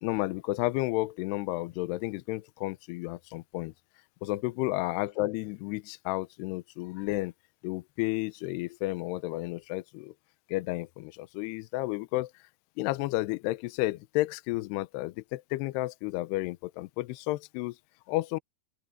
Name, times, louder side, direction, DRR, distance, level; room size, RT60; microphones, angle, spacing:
voice 1, 0.0-3.7 4.2-7.3 7.6-10.1 10.5-12.3 12.8-17.8 18.1-18.4, left 19 dB, 85° left, 2.4 m, -32 dB
open air
omnidirectional pair, 5.4 m